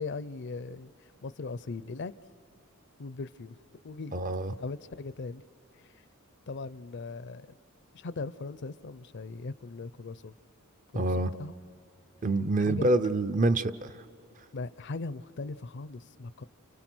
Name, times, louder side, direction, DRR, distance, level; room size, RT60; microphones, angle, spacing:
voice 1, 0.0-2.1 3.0-3.6 3.8-4.2 4.6-5.4 5.7-6.0 6.5-7.6 7.9-10.3 10.9-11.6 12.7-12.9 14.5-16.4, left 3 dB, 55° left, 16 dB, 0.5 m, -39 dB
voice 2, 4.1-4.5 10.9-11.3 12.2-13.9, right 2 dB, 40° right, 13 dB, 0.6 m, -26 dB
30.0 x 29.5 x 6.2 m, 2.6 s
head